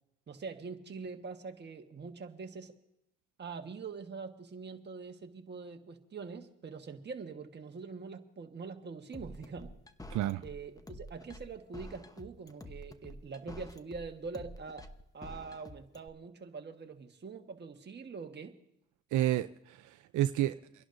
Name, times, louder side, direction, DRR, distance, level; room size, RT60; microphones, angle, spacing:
voice 1, 0.3-2.7 3.4-9.7 10.4-14.9 15.1-18.6, right 4 dB, 35° right, 4 dB, 1.4 m, -44 dB
sound 1, 9.1-16.1, left 1 dB, 10° left, 0.9 m, -48 dB
voice 2, 10.1-10.4 19.1-20.8, right 13 dB, 75° right, 10 dB, 0.5 m, -31 dB
29.5 x 11.0 x 2.6 m, 0.84 s
cardioid pair, 90°, 30 cm